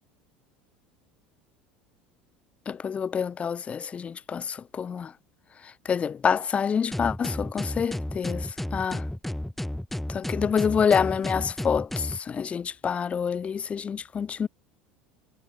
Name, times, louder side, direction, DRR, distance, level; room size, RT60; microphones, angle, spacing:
voice 1, 2.7-5.1 5.9-8.5 8.7-9.0 10.1-14.5, left 7 dB, 25° left, 0.4 m, -27 dB
sound 1, 6.9-12.2, left 1 dB, 5° left, 1.2 m, -32 dB
figure-of-eight pair, 70°, 5 cm